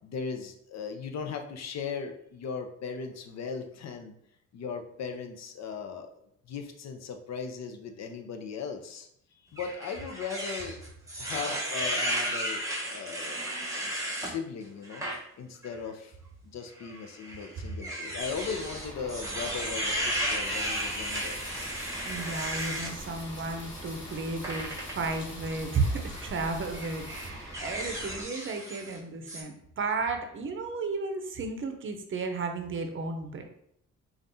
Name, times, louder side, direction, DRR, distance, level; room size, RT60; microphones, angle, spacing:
voice 1, 0.0-4.1 4.5-6.1 6.5-9.1 9.5-10.8 11.2-13.4 13.8-16.2 16.5-21.4, left 5 dB, 60° left, 5 dB, 0.6 m, -38 dB
sound 1, 9.6-14.3 14.8-15.2 15.6-15.8 16.8-22.9 24.4-25.1 26.0-26.3 26.7-29.0 29.3-29.4, equal, 10° right, 0.9 m, -34 dB
Bus / Idling, 18.2-28.2, equal, 10° left, 1.3 m, -44 dB
sound 2, 20.4-27.3, left 2 dB, 40° left, 1.3 m, -47 dB
voice 2, 22.0-24.7 25.0-33.5, right 3 dB, 40° right, 5 dB, 0.6 m, -33 dB
5.2 x 2.4 x 2.7 m, 0.71 s
cardioid pair, 90°, 30 cm